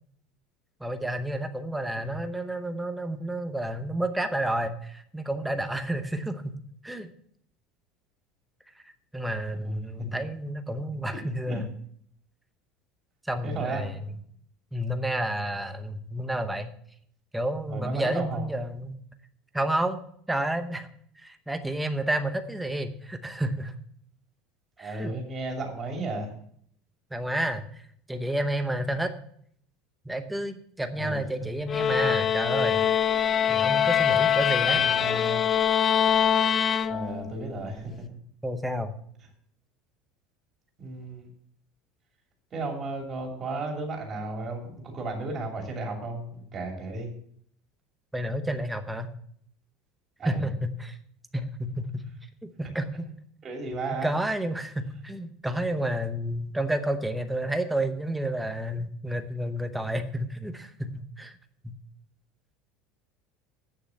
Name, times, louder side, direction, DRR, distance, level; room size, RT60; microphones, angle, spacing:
voice 1, 0.8-6.5 6.8-7.1 9.1-11.7 13.3-14.0 14.7-16.7 17.3-19.0 19.5-20.0 20.3-20.9 21.2-23.7 24.8-25.1 27.1-27.6 28.1-29.1 30.1-32.8 33.5-34.8 38.4-38.9 48.1-49.1 50.2-51.0 51.3-52.0 52.4-52.9 54.0-61.3 61.6-61.8, right 1 dB, 5° right, 7 dB, 0.8 m, -30 dB
voice 2, 9.5-9.8 11.1-11.2 11.5-11.6 13.4-13.9 17.7-18.4 24.8-26.3 31.0-31.2 34.7-35.4 36.9-38.2 40.8-41.2 42.5-47.1 50.2-50.5 53.4-54.1, right 2 dB, 25° right, 1 dB, 2.9 m, -34 dB
sound 1, 31.7-37.4, left 8 dB, 25° left, 0.5 m, -23 dB
8.8 x 6.8 x 7.7 m, 0.64 s
cardioid pair, 160°, 0 cm